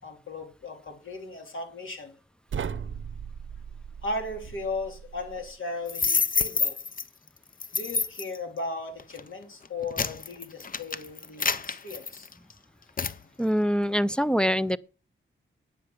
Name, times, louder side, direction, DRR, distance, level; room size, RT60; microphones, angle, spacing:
voice 1, 0.0-2.1 4.0-6.8 7.7-12.3, left 2 dB, 70° left, 3.2 m, -36 dB
sound 1, 2.5-5.6, right 7 dB, 70° right, 0.7 m, -38 dB
sound 2, 5.9-7.0 7.6-8.4 9.0-9.2 9.6-12.5 13.0-13.2, left 5 dB, 40° left, 0.7 m, -28 dB
voice 2, 13.4-14.8, equal, 5° left, 0.4 m, -24 dB
9.6 x 6.7 x 6.4 m
wide cardioid pair, 80°, 21 cm